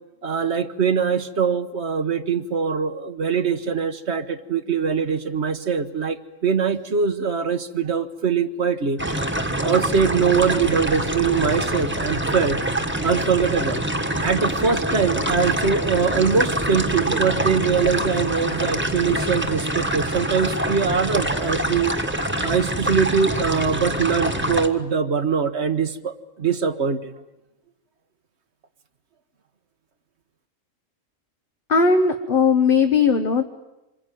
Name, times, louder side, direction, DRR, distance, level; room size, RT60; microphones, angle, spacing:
voice 1, 0.2-9.2 9.6-12.6 13.0-13.8 14.2-21.9 22.4-27.1, right 6 dB, 60° right, 10 dB, 1.4 m, -22 dB
sound 1, 9.0-24.7, right 1 dB, 10° right, 1.5 m, -25 dB
voice 2, 31.7-33.4, left 5 dB, 45° left, 5 dB, 1.3 m, -18 dB
26.5 x 22.5 x 9.2 m, 0.98 s
omnidirectional pair, 1.3 m